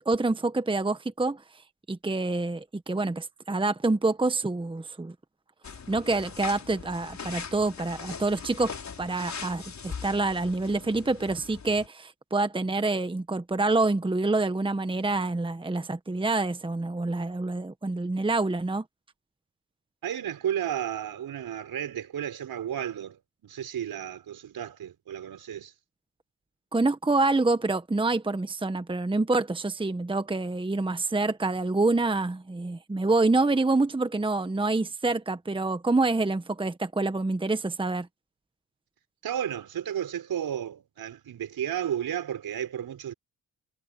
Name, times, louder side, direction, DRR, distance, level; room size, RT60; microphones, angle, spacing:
voice 1, 0.0-1.6 1.9-5.1 5.9-18.8 26.7-38.1, right 3 dB, 15° right, 1.3 m, -27 dB
sound 1, 5.6-11.9, left 6 dB, 45° left, 5.0 m, -41 dB
voice 2, 20.0-25.7 39.2-43.1, right 10 dB, 60° right, 5.1 m, -33 dB
supercardioid pair, 65°, 40 cm